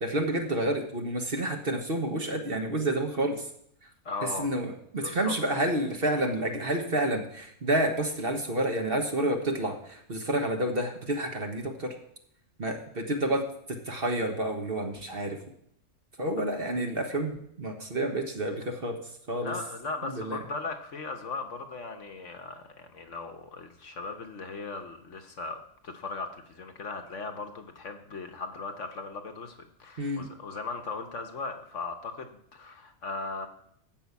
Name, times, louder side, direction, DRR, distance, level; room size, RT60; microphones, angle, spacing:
voice 1, 0.0-3.4 4.4-11.9 12.6-13.4 13.9-15.4 16.2-19.0 19.3-19.5 20.0-20.4 30.0-30.3, right 1 dB, 40° right, 3 dB, 1.4 m, -29 dB
voice 2, 4.0-4.5 5.0-5.3 19.4-33.5, left 3 dB, 55° left, 6 dB, 1.3 m, -38 dB
13.5 x 5.6 x 8.3 m, 0.70 s
omnidirectional pair, 1.6 m